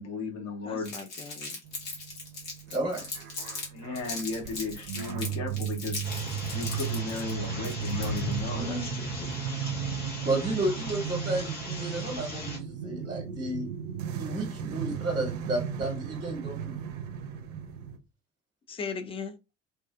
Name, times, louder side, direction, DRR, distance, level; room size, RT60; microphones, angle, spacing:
voice 1, 0.0-0.9 3.7-6.0 6.5-8.7, left 3 dB, 45° left, 0.9 m, -35 dB
voice 2, 0.6-1.6 8.5-9.3 18.7-19.4, left 5 dB, 15° left, 0.3 m, -39 dB
Crumpling crinkling, 0.8-3.7 3.9-8.4, left 3 dB, 65° left, 1.2 m, -39 dB
sound 1, 1.6-18.0, right 9 dB, 65° right, 0.5 m, -36 dB
voice 3, 2.7-3.2 8.6-8.9 10.2-13.7 14.1-16.7, right 2 dB, 20° right, 1.0 m, -32 dB
sound 2, 6.0-12.6, left 1 dB, 80° left, 1.1 m, -37 dB
2.6 x 2.3 x 2.4 m
figure-of-eight pair, 50°, 37 cm